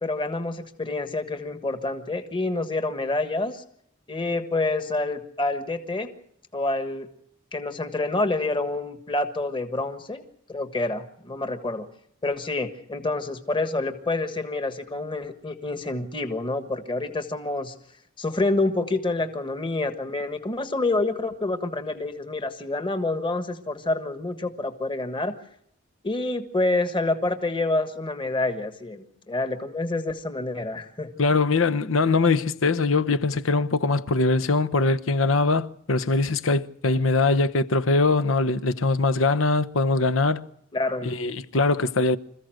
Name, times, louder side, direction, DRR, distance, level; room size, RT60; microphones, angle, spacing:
voice 1, 0.0-3.6 4.1-6.1 6.5-7.1 7.5-10.2 10.5-11.9 12.2-17.7 18.2-25.3 26.0-31.1 40.7-41.2, left 2 dB, 25° left, 1.5 m, -27 dB
voice 2, 31.2-40.5 41.0-42.2, left 3 dB, 85° left, 0.9 m, -22 dB
26.5 x 15.0 x 7.8 m
head